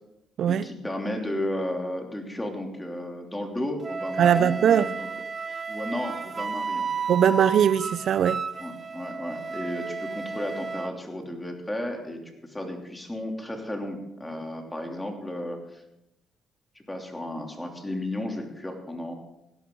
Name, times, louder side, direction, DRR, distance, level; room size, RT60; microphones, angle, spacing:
voice 1, 0.5-5.1 5.7-6.9 8.6-12.2 12.5-15.8 16.9-19.1, left 1 dB, 10° left, 3.1 m, -33 dB
Wind instrument woodwind instrument, 3.8-10.9, right 4 dB, 35° right, 0.9 m, -33 dB
voice 2, 4.2-4.9 7.1-8.4, right 9 dB, 65° right, 0.4 m, -20 dB
17.0 x 11.5 x 3.9 m
supercardioid pair, 70°, 0 cm